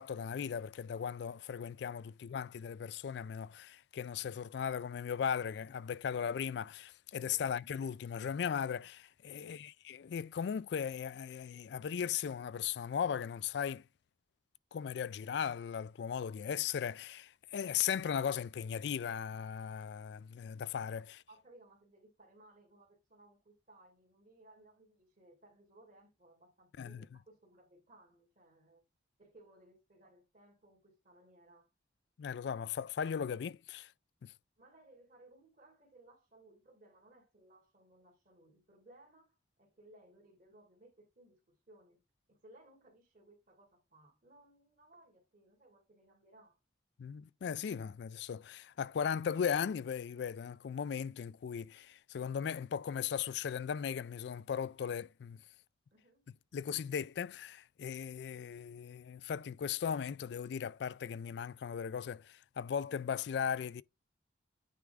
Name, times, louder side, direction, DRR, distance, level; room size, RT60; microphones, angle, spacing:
voice 1, 0.0-13.8 14.7-21.2 26.8-27.0 32.2-33.9 34.2-34.3 47.0-55.4 56.5-63.8, left 7 dB, 65° left, 0.3 m, -37 dB
voice 2, 9.3-9.6 21.3-28.9 29.2-31.7 34.6-42.0 42.3-46.6 55.9-56.3, right 2 dB, 45° right, 2.6 m, -62 dB
9.3 x 3.6 x 3.4 m
head